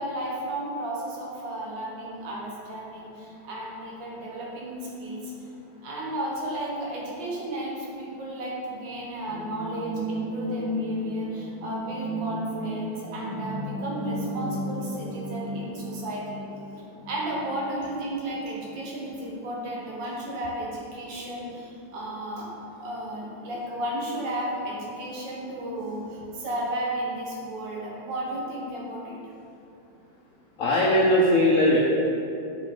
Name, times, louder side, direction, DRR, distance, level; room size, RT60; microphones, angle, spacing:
voice 1, 0.0-5.3 5.8-16.5 17.1-22.5 22.8-29.2, right 1 dB, 70° right, -3 dB, 1.7 m, -33 dB
sound 1, 9.3-18.8 19.2-19.3, equal, 55° right, 1.6 m, -34 dB
voice 2, 30.6-31.8, left 1 dB, 75° left, -4 dB, 0.7 m, -19 dB
6.0 x 4.8 x 3.8 m, 2.7 s
omnidirectional pair, 2.1 m